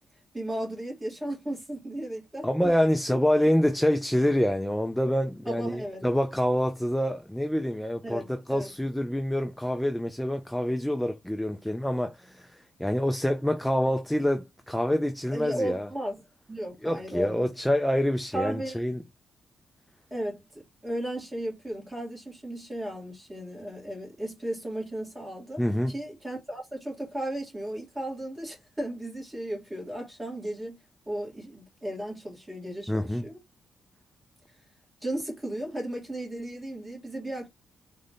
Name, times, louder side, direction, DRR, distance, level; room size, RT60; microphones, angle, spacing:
voice 1, 0.3-2.5 5.5-6.1 8.0-8.7 15.3-16.2 16.5-17.5 18.3-18.8 20.1-25.6 25.9-30.8 31.1-33.4 35.0-37.5, right 1 dB, 15° right, 2.1 m, -35 dB
voice 2, 2.4-15.9 16.8-19.0 25.6-25.9 32.9-33.2, equal, 5° left, 0.4 m, -26 dB
3.8 x 2.6 x 3.6 m
cardioid pair, 115°, 0 cm